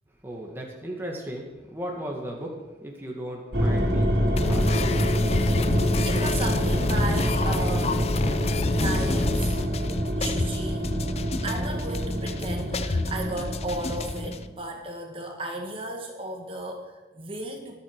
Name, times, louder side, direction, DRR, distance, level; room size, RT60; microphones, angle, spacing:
voice 1, 0.2-2.6 2.8-4.1 4.4-5.3, equal, 15° right, -1 dB, 1.9 m, -36 dB
sound 1, 3.5-14.3, equal, 60° right, 3.4 m, -26 dB
sound 2, 4.4-14.4, left 3 dB, 35° left, 0.5 m, -29 dB
voice 2, 6.1-8.0 8.7-9.6 10.2-10.9 11.4-17.8, right 2 dB, 30° right, 2 dB, 1.9 m, -34 dB
23.5 x 8.5 x 4.8 m, 1.2 s
head